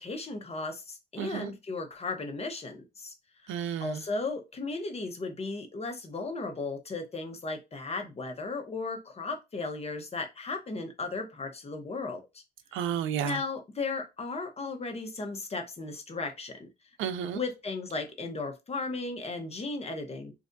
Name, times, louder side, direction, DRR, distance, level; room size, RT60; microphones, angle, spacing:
voice 1, 0.0-3.1 3.8-12.2 13.2-16.7 17.3-20.3, left 3 dB, 30° left, 0.9 m, -35 dB
voice 2, 1.2-1.5 3.5-4.0 12.7-13.4 17.0-17.4, right 9 dB, 85° right, 0.5 m, -32 dB
3.3 x 2.6 x 2.6 m
cardioid pair, 90°, 20 cm